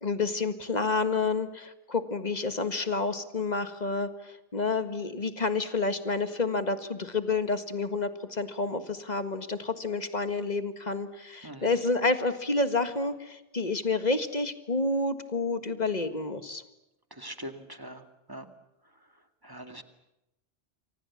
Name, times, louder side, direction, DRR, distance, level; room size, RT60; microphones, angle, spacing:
voice 1, 0.0-16.6, left 3 dB, 35° left, 10 dB, 1.9 m, -29 dB
voice 2, 17.1-18.0 18.3-18.5 19.4-19.8, right 1 dB, 20° right, 8 dB, 2.1 m, -42 dB
29.0 x 25.0 x 7.4 m, 0.89 s
omnidirectional pair, 1.2 m